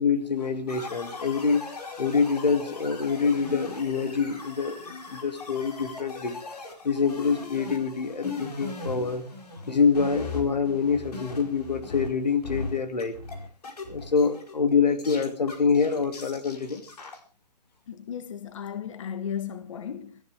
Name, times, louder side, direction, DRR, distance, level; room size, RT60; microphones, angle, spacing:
voice 1, 0.0-1.6 2.0-9.3 9.7-13.2 13.9-16.8, left 5 dB, 90° left, 2.3 m, -26 dB
sound 1, 0.7-12.1 12.4-17.2, left 3 dB, 70° left, 4.9 m, -39 dB
voice 2, 17.9-20.2, left 8 dB, 50° left, 1.5 m, -35 dB
22.0 x 14.5 x 3.4 m
hypercardioid pair, 160°, 21 cm